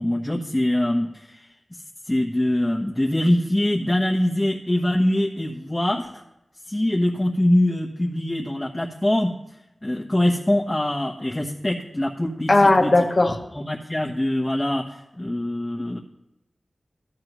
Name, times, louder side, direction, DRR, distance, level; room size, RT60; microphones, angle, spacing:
voice 1, 0.0-1.5 2.1-6.1 6.7-9.3 9.8-12.9 13.5-16.0, left 1 dB, 15° left, -3 dB, 1.1 m, -23 dB
voice 2, 12.5-13.3, left 2 dB, 55° left, 3 dB, 1.0 m, -16 dB
13.5 x 9.4 x 3.1 m, 0.92 s
wide cardioid pair, 55°, 0 cm